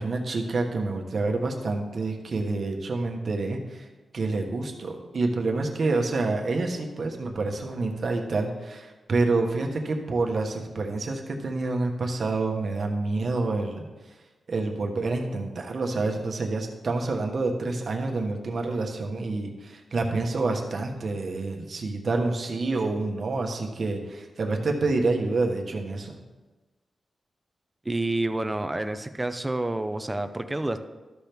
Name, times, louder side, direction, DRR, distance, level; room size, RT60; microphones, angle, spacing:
voice 1, 0.0-3.9 4.1-13.9 14.5-26.2, right 3 dB, 50° right, 2 dB, 1.2 m, -28 dB
voice 2, 27.9-30.8, right 2 dB, 15° right, 9 dB, 0.5 m, -28 dB
13.0 x 5.9 x 3.5 m, 1.2 s
wide cardioid pair, 140°, 0 cm